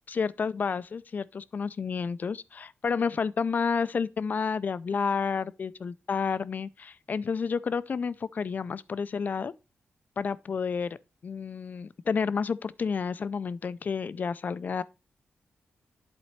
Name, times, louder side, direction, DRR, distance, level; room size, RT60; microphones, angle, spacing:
voice 1, 0.1-9.5 10.2-11.0 11.2-14.8, left 5 dB, 45° left, 0.4 m, -30 dB
11.0 x 4.2 x 3.1 m
wide cardioid pair, 125°, 4 cm